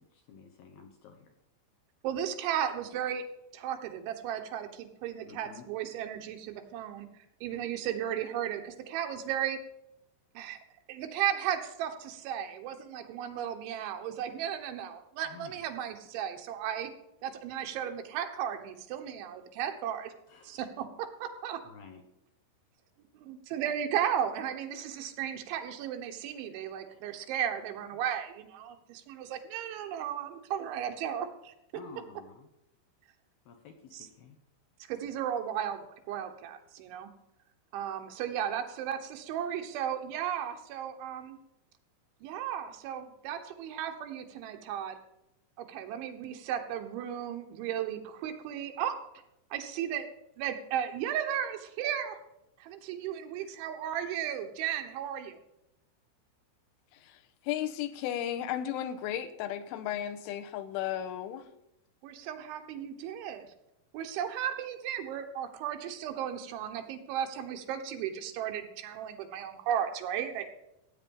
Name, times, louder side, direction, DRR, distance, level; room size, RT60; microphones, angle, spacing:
voice 1, 0.0-1.3 5.2-5.7 7.5-7.7 15.2-15.6 20.3-20.6 21.6-22.0 26.3-26.4 26.9-27.2 31.7-32.5 33.5-34.4, left 5 dB, 70° left, 4 dB, 2.4 m, -51 dB
voice 2, 2.0-3.2 3.5-9.6 10.4-10.6 10.9-16.9 17.2-20.1 20.4-20.9 21.2-21.6 23.1-31.5 33.9-34.1 34.9-37.1 37.7-41.4 42.2-45.0 45.6-48.9 49.5-50.1 50.4-52.2 52.6-55.4 62.0-63.5 63.9-70.5, right 9 dB, 80° right, 5 dB, 3.5 m, -35 dB
voice 3, 57.5-61.5, left 11 dB, 85° left, 9 dB, 3.4 m, -34 dB
16.0 x 8.9 x 5.4 m, 0.85 s
omnidirectional pair, 5.5 m